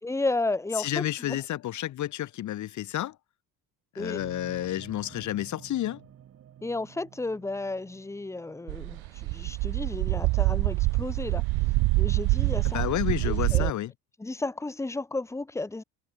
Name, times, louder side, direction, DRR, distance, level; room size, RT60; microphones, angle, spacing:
voice 1, 0.0-1.4 4.0-4.3 6.6-11.4 12.0-12.8 13.2-13.7 14.2-15.8, left 2 dB, 5° left, 3.0 m, -33 dB
voice 2, 0.8-3.1 3.9-6.0 12.7-13.9, left 13 dB, 50° left, 3.0 m, -30 dB
sound 1, 4.2-9.2, right 10 dB, 40° right, 7.2 m, -51 dB
sound 2, 8.7-13.7, right 23 dB, 85° right, 0.8 m, -25 dB
cardioid pair, 180°, 37 cm